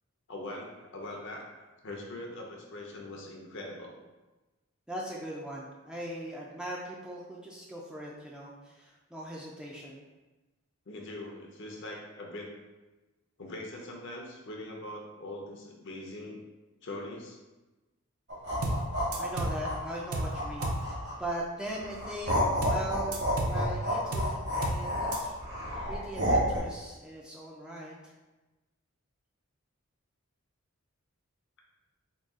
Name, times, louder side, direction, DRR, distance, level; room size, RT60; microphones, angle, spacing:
voice 1, 0.3-4.0 10.9-12.5 13.4-16.4 16.8-17.4, left 1 dB, 55° left, 0 dB, 0.6 m, -42 dB
voice 2, 4.9-10.0 18.6-18.8 19.2-22.4 22.6-25.4 25.8-28.1, right 1 dB, 5° right, -4 dB, 0.3 m, -40 dB
sound 1, 18.3-21.3 21.8-26.6, equal, 55° right, 1.1 m, -30 dB
sound 2, 18.6-18.9 19.1-19.6 20.1-20.4 20.6-20.9 22.6-22.9 23.1-23.6 24.1-24.4 24.6-24.9 25.1-25.2, right 2 dB, 75° right, 0.5 m, -32 dB
3.8 x 2.3 x 3.6 m, 1.1 s
head